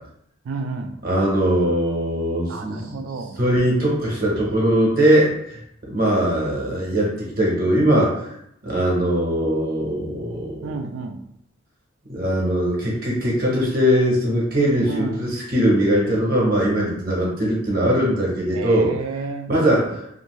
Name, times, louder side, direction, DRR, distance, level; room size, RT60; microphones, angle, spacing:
voice 1, 0.4-1.0 2.5-3.4 10.6-11.2 14.9-15.3 18.5-20.0, right 4 dB, 80° right, 7 dB, 0.4 m, -31 dB
voice 2, 1.0-3.0 3.4-5.6 5.9-8.3 8.6-10.8 12.1-18.9 19.5-20.0, equal, 45° right, -4 dB, 0.8 m, -20 dB
2.6 x 2.5 x 3.0 m, 0.75 s
head